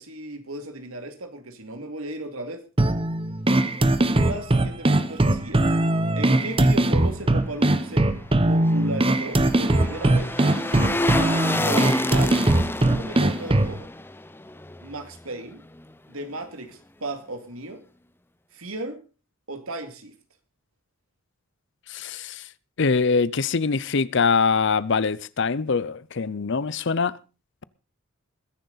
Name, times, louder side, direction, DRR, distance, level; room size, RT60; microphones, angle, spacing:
voice 1, 0.0-2.6 4.2-5.9 6.2-8.1 8.4-11.1 11.5-12.5 12.9-13.9 14.8-15.6 16.1-17.8 18.5-19.0 19.5-20.1, right 2 dB, 85° right, 2.4 m, -35 dB
sound 1, 2.8-13.8, right 1 dB, 25° right, 0.9 m, -21 dB
sound 2, 8.2-15.4 15.7-15.8, left 2 dB, 10° left, 0.6 m, -30 dB
voice 2, 21.9-22.5 22.8-27.2, left 5 dB, 60° left, 0.6 m, -23 dB
21.0 x 10.5 x 4.1 m
head